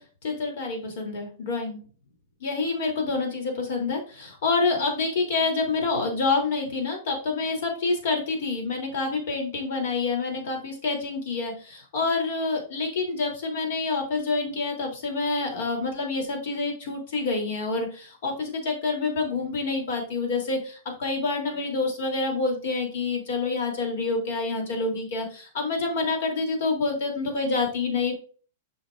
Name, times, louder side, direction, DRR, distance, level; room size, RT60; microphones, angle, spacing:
voice 1, 0.2-1.8 2.4-28.1, left 3 dB, 65° left, 2 dB, 2.9 m, -27 dB
7.9 x 5.9 x 2.5 m, 0.39 s
supercardioid pair, 160°, 0 cm